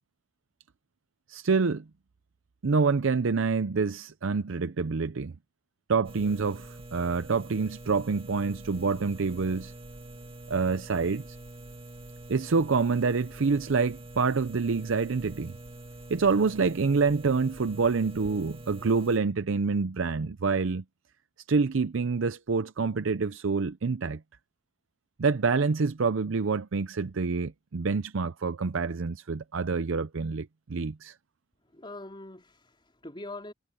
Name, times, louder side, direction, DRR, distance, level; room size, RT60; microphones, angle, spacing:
voice 1, 1.3-1.8 2.6-5.3 5.9-9.7 10.5-11.2 12.3-15.6 16.1-20.8 21.5-24.2 25.2-31.2, right 4 dB, 65° right, 0.6 m, -27 dB
sound 1, 6.0-19.2, right 1 dB, 25° right, 2.3 m, -45 dB
voice 2, 31.6-33.5, left 2 dB, 25° left, 4.5 m, -43 dB
head